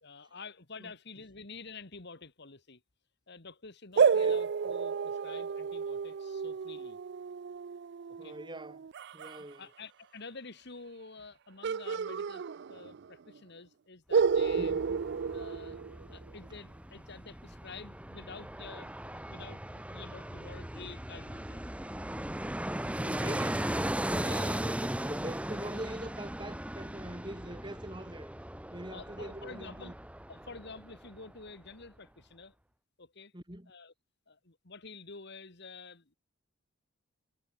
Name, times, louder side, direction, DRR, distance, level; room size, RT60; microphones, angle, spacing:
voice 1, 0.0-2.8 3.3-7.0 8.2-8.4 9.4-14.8 15.3-15.8 16.1-21.7 24.2-24.6 25.0-25.1 28.9-29.9 30.3-32.5 33.0-33.3 33.7-33.9 34.3-36.1, left 4 dB, 55° left, 2.0 m, -49 dB
voice 2, 4.0-4.3 8.2-9.7 14.5-15.0 23.0-28.3 28.7-29.9 33.3-33.7, right 1 dB, 20° right, 3.1 m, -43 dB
sound 1, 4.0-9.4 11.6-13.1 13.4-13.5 14.1-16.3, right 6 dB, 55° right, 0.4 m, -31 dB
Fixed-wing aircraft airplane, 14.2-31.2 31.5-31.6, right 1 dB, 5° right, 1.3 m, -38 dB
head